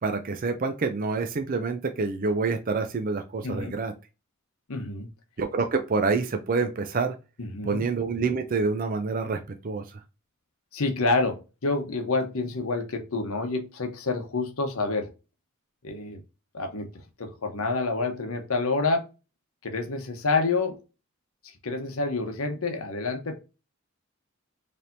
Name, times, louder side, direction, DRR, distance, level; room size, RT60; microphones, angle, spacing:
voice 1, 0.0-3.9 5.4-7.2 7.6-9.8, right 4 dB, 40° right, 0.4 m, -27 dB
voice 2, 3.4-3.7 4.7-5.1 7.4-7.8 10.7-15.1 15.8-16.2 16.5-16.9 17.2-19.0 19.6-20.8 21.6-23.4, left 3 dB, 75° left, 0.9 m, -28 dB
4.3 x 3.3 x 2.6 m
head